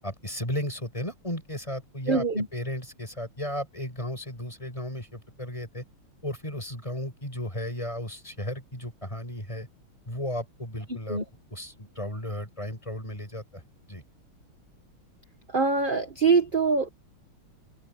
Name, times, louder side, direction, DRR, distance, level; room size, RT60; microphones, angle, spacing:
voice 1, 0.0-2.2 2.5-5.8 6.2-9.7 10.1-11.2 11.5-13.6 13.9-14.0, left 1 dB, 15° left, 7.8 m, -34 dB
voice 2, 2.1-2.5 11.1-11.2 15.5-16.9, right 4 dB, 25° right, 1.8 m, -23 dB
omnidirectional pair, 2.4 m